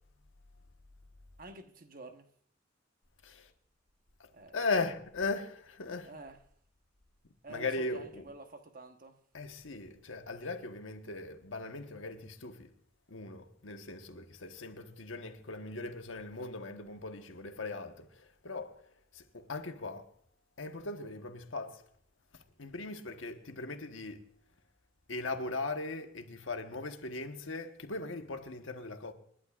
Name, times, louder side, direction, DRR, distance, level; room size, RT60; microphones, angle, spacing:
voice 1, 1.4-2.3 4.3-4.5 6.0-6.4 7.4-9.2, right 3 dB, 50° right, 1.2 m, -49 dB
voice 2, 4.2-6.1 7.5-8.2 9.3-12.7 13.1-18.8 19.1-20.1 20.6-21.8 22.3-24.2 25.1-29.1, left 3 dB, 90° left, 1.3 m, -39 dB
28.5 x 11.5 x 2.5 m
head